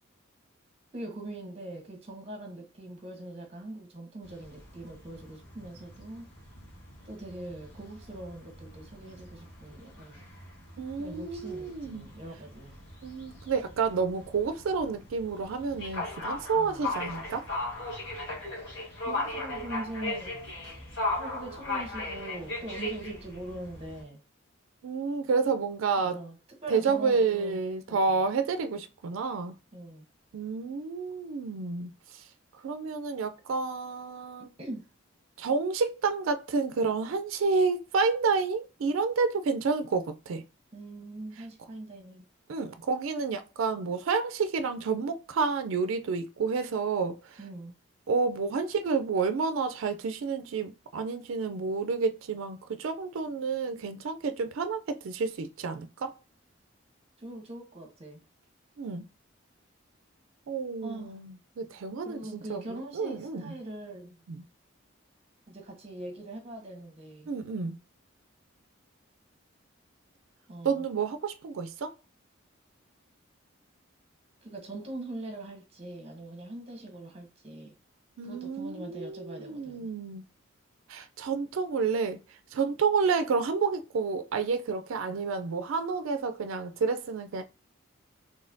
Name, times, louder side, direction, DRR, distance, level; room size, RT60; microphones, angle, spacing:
voice 1, 0.9-6.2 7.1-10.2 11.0-12.7 16.5-16.8 19.0-20.4 21.1-24.2 26.0-27.6 27.9-28.1 29.7-30.0 34.6-34.8 40.7-42.3 47.4-47.8 57.2-58.2 60.8-61.2 62.0-64.2 65.5-67.3 70.5-70.8 74.4-77.7 78.2-79.9, right 1 dB, 30° right, 1.1 m, -42 dB
sound 1, 4.2-24.0, left 2 dB, 65° left, 1.5 m, -38 dB
voice 2, 10.8-12.1 13.0-17.5 24.8-26.2 26.7-29.5 30.3-32.2 32.6-34.5 35.4-40.4 42.5-47.4 48.1-56.1 58.8-59.1 60.5-63.5 64.3-64.4 67.3-67.8 70.6-71.9 78.2-80.2 80.9-82.2 82.5-87.4, right 4 dB, 75° right, 0.4 m, -30 dB
4.1 x 3.2 x 2.6 m
head